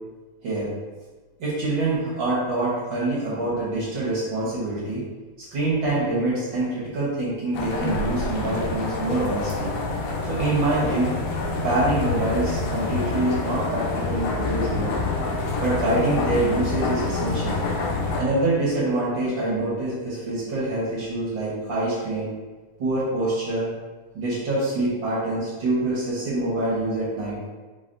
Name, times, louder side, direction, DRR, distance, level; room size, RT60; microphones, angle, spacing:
voice 1, 0.4-0.7 1.4-5.0 5.5-9.7 10.2-11.1 11.5-14.9 15.6-17.6 18.2-22.3 22.8-23.7 24.1-27.4, right 2 dB, 55° right, -7 dB, 1.4 m, -25 dB
sound 1, 7.5-18.2, left 3 dB, 80° left, 1.9 m, -27 dB
4.9 x 4.0 x 2.6 m, 1.3 s
omnidirectional pair, 3.5 m